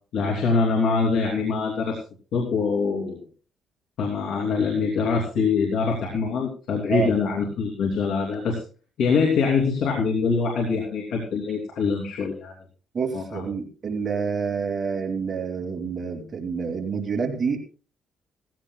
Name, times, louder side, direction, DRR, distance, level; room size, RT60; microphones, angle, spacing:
voice 1, 0.1-2.0 2.3-3.2 4.0-8.6 9.0-12.5 13.1-13.4, left 5 dB, 75° left, 0 dB, 3.0 m, -24 dB
voice 2, 12.9-17.6, right 5 dB, 35° right, 4 dB, 2.5 m, -28 dB
18.0 x 15.0 x 2.3 m, 0.37 s
cardioid pair, 115°, 0 cm